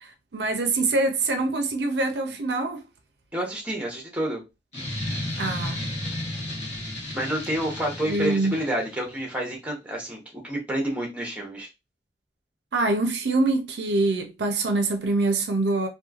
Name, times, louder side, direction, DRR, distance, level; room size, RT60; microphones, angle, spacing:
voice 1, 0.0-2.8 5.4-5.9 8.0-8.6 12.7-15.9, right 2 dB, 65° right, 0.5 m, -24 dB
voice 2, 3.3-4.4 7.1-11.7, right 1 dB, 5° right, 0.8 m, -29 dB
sound 1, 4.7-9.2, left 1 dB, 35° left, 1.1 m, -33 dB
3.0 x 2.2 x 2.3 m
head